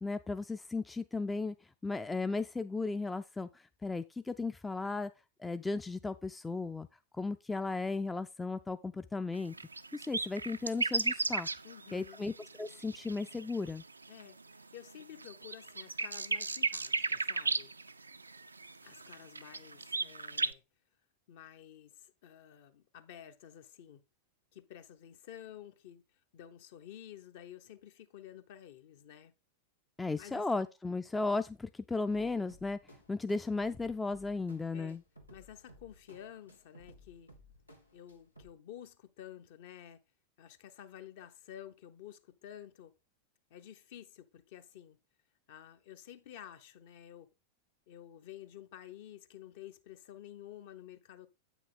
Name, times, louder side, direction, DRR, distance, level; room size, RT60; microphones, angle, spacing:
voice 1, 0.0-1.6 1.8-5.1 5.4-6.9 7.2-9.5 9.9-11.5 11.9-12.3 12.6-13.8 30.0-32.8 33.1-35.0, left 3 dB, 10° left, 0.4 m, -35 dB
sound 1, 9.3-14.4 14.9-20.5, right 3 dB, 80° right, 0.3 m, -35 dB
voice 2, 11.6-12.2 14.1-17.7 18.8-20.6 21.3-24.0 24.5-26.0 26.3-29.3 30.2-30.4 34.7-35.0 35.3-37.3 37.9-40.0 40.4-42.9 43.5-45.0 45.5-47.3 47.9-51.3, left 11 dB, 50° left, 0.8 m, -51 dB
sound 2, 32.1-38.5, equal, 85° left, 1.6 m, -59 dB
8.1 x 6.0 x 3.8 m
figure-of-eight pair, 90°, 0 cm